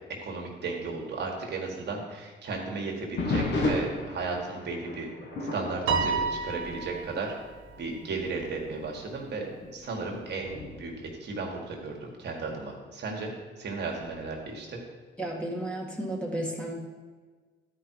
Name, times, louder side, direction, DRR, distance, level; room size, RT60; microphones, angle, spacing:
voice 1, 0.2-5.1 5.4-7.3 7.8-14.8, right 3 dB, 60° right, 0 dB, 1.7 m, -35 dB
sound 1, 3.2-7.3 7.6-8.0 8.6-8.7 9.4-12.1 14.0-14.5, left 2 dB, 60° left, 1.6 m, -34 dB
Piano, 5.9-7.4, right 5 dB, 75° right, 1.3 m, -29 dB
voice 2, 15.2-16.7, right 1 dB, 5° left, -3 dB, 2.1 m, -33 dB
12.0 x 4.9 x 4.7 m, 1.4 s
cardioid pair, 90°, 20 cm